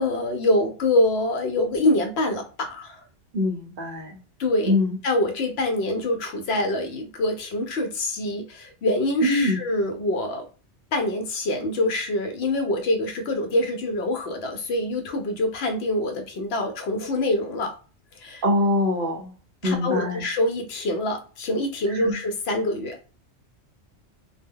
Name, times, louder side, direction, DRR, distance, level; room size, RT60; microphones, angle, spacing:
voice 1, 0.0-3.0 4.4-4.7 5.0-10.5 10.9-17.7 18.2-18.4 19.6-23.0, left 1 dB, 65° left, 5 dB, 0.8 m, -25 dB
voice 2, 3.3-4.2 4.7-5.0 9.2-9.6 18.4-19.3 19.6-20.2 21.9-22.2, left 1 dB, 55° right, 2 dB, 0.7 m, -23 dB
2.2 x 2.1 x 3.5 m, 0.36 s
omnidirectional pair, 1.2 m